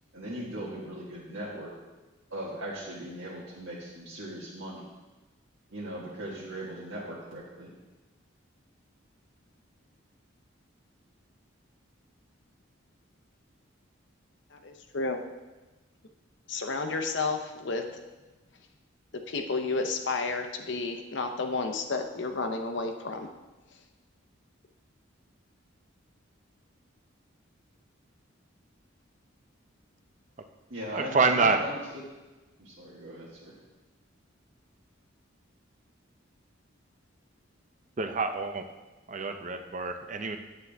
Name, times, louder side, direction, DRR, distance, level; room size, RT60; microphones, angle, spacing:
voice 1, 0.1-1.7 2.3-4.9 5.7-7.7 30.7-31.8 32.6-33.5, right 1 dB, 80° right, -7 dB, 1.6 m, -38 dB
voice 2, 14.5-15.2 16.5-17.8 19.3-23.3, left 3 dB, 60° left, 4 dB, 0.7 m, -31 dB
voice 3, 30.9-31.6 38.0-38.7 39.1-40.4, right 4 dB, 35° right, 7 dB, 0.6 m, -27 dB
9.6 x 7.7 x 3.4 m, 1.1 s
head